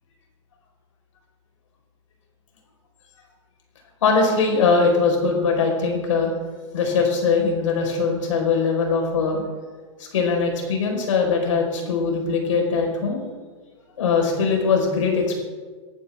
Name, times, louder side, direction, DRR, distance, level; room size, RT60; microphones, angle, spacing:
voice 1, 4.0-6.3 6.7-9.4 10.0-13.2 14.0-15.4, left 4 dB, 80° left, 1 dB, 4.7 m, -21 dB
20.5 x 11.0 x 3.6 m, 1.4 s
hypercardioid pair, 120°, 16 cm